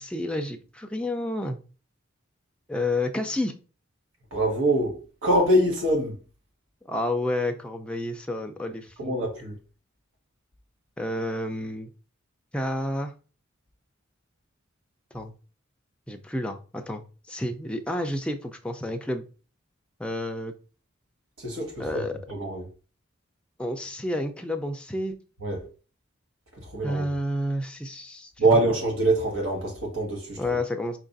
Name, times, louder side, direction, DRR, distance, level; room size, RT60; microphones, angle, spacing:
voice 1, 0.0-1.6 2.7-3.6 6.9-9.2 11.0-11.9 12.5-13.1 15.1-15.3 16.1-19.2 20.0-20.5 21.8-22.2 23.6-25.2 26.8-28.3 30.4-31.0, left 1 dB, 5° left, 0.4 m, -30 dB
voice 2, 4.3-6.2 9.0-9.6 21.4-22.7 25.4-25.6 26.5-27.1 28.4-30.4, right 1 dB, 85° right, 1.2 m, -24 dB
4.6 x 2.5 x 3.8 m
head